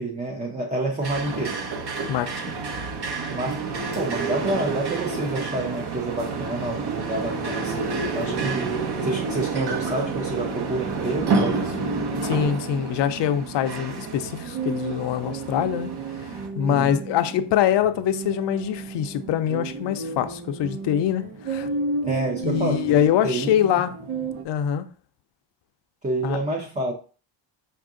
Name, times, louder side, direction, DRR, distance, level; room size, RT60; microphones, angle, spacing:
voice 1, 0.0-1.6 3.3-11.8 16.6-17.0 22.0-23.0 23.2-23.7 26.0-26.9, right 2 dB, 15° right, 0.5 m, -28 dB
sound 1, 1.0-16.5, right 4 dB, 50° right, 0.9 m, -29 dB
voice 2, 2.1-2.5 12.2-21.7 22.4-23.9 24.4-24.8 26.2-26.4, left 10 dB, 60° left, 0.5 m, -24 dB
sound 2, 11.3-24.4, right 3 dB, 80° right, 1.0 m, -34 dB
5.4 x 2.6 x 3.7 m
cardioid pair, 130°, 49 cm